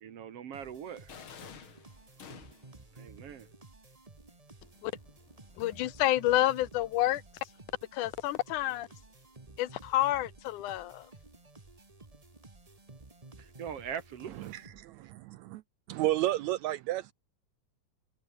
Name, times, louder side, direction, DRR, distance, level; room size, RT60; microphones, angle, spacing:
voice 1, 0.0-1.1 2.9-3.5 13.4-14.5, right 8 dB, 55° right, 2.2 m, -41 dB
sound 1, 0.5-15.1, right 2 dB, 20° right, 1.1 m, -54 dB
sound 2, 1.1-2.8, left 7 dB, 45° left, 2.5 m, -49 dB
voice 2, 5.6-7.2 7.9-8.9 9.6-11.1, left 15 dB, 75° left, 2.3 m, -29 dB
voice 3, 14.3-15.6 15.9-17.1, right 15 dB, 80° right, 1.7 m, -32 dB
omnidirectional pair, 3.6 m